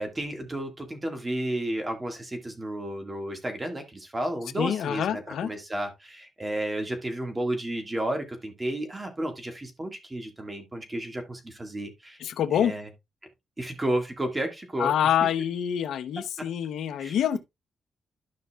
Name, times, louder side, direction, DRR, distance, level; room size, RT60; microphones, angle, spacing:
voice 1, 0.0-12.2 12.5-12.9 13.6-14.9 16.4-16.5 17.0-17.4, right 1 dB, 15° right, 1.8 m, -32 dB
voice 2, 4.6-5.5 12.2-12.7 14.8-17.4, left 9 dB, 85° left, 0.6 m, -26 dB
13.0 x 5.5 x 2.3 m
wide cardioid pair, 145°, 0 cm